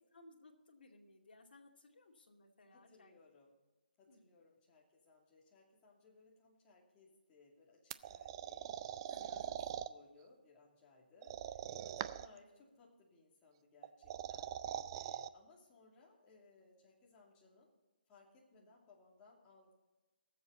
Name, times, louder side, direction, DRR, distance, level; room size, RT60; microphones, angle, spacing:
voice 1, 0.0-3.1 4.1-4.3 9.1-9.5 18.5-18.7, left 2 dB, 70° left, 1 dB, 2.4 m, -62 dB
voice 2, 2.7-3.6 4.0-17.7 18.1-19.7, left 3 dB, 20° left, -3 dB, 2.6 m, -65 dB
sound 1, 7.9-9.9 11.2-12.4 13.8-15.3, right 11 dB, 30° right, 0.4 m, -43 dB
19.5 x 7.8 x 4.0 m, 1.2 s
hypercardioid pair, 155°, 5 cm